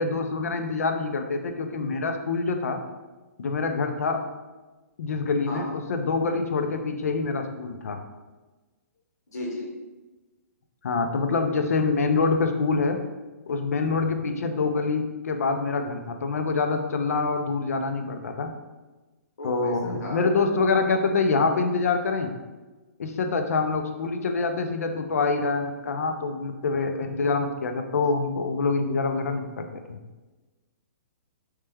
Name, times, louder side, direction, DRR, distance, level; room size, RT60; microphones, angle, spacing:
voice 1, 0.0-2.8 3.4-4.2 5.0-8.0 10.8-13.0 13.5-18.5 19.4-22.3 23.0-30.0, left 4 dB, 65° left, 5 dB, 0.5 m, -26 dB
voice 2, 9.3-9.7 19.4-20.2, left 1 dB, 90° left, -2 dB, 1.1 m, -35 dB
3.2 x 3.2 x 3.4 m, 1.2 s
hypercardioid pair, 175°, 9 cm